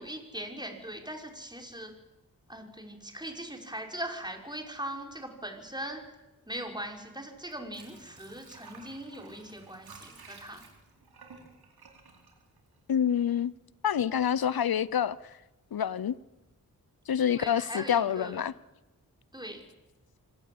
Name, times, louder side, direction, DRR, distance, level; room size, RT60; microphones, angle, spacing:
voice 1, 0.0-1.9 2.5-6.0 6.5-10.7 17.3-18.4 19.3-19.7, right 1 dB, 10° right, 5.5 m, -40 dB
Water / Sink (filling or washing), 7.3-13.2 13.6-13.7, right 4 dB, 85° right, 4.5 m, -53 dB
voice 2, 12.9-13.5 13.8-15.2 15.7-16.1 17.1-18.5, left 9 dB, 75° left, 0.9 m, -27 dB
25.5 x 17.5 x 8.7 m
cardioid pair, 45°, 36 cm